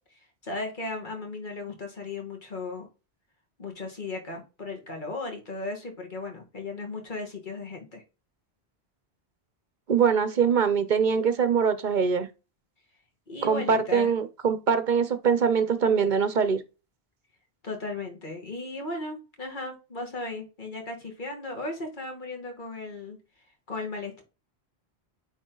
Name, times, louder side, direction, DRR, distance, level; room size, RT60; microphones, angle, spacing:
voice 1, 0.4-2.9 3.6-8.0 13.3-14.1 17.6-23.2 23.7-24.2, left 2 dB, 50° left, 2.0 m, -36 dB
voice 2, 9.9-12.3 13.4-16.6, right 6 dB, 50° right, 0.8 m, -23 dB
9.1 x 3.6 x 3.9 m
omnidirectional pair, 1.1 m